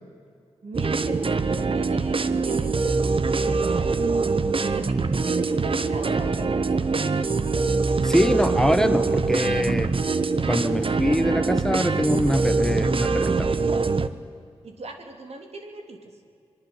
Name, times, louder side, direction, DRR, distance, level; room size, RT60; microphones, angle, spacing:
voice 1, 0.6-4.1 4.4-7.4 10.3-10.5 14.6-16.0, right 3 dB, 70° right, 4 dB, 3.3 m, -38 dB
sound 1, 0.7-14.1, right 4 dB, 55° right, 1.2 m, -24 dB
voice 2, 8.0-9.9 10.5-13.5, equal, 5° left, 9 dB, 1.5 m, -23 dB
26.0 x 21.5 x 8.1 m, 2.4 s
cardioid pair, 40°, 11 cm